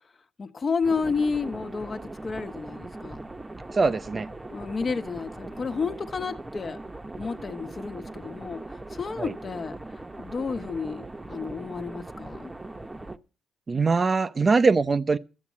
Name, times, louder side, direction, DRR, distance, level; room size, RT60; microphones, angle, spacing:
voice 1, 0.4-3.2 4.5-6.8 7.2-9.8 10.2-12.5, left 5 dB, 40° left, 1.3 m, -31 dB
sound 1, 0.8-13.2, right 2 dB, 15° right, 1.0 m, -40 dB
voice 2, 3.7-4.3 9.2-9.3 13.7-15.2, right 4 dB, 30° right, 0.7 m, -22 dB
13.0 x 7.2 x 8.6 m
cardioid pair, 90°, 0 cm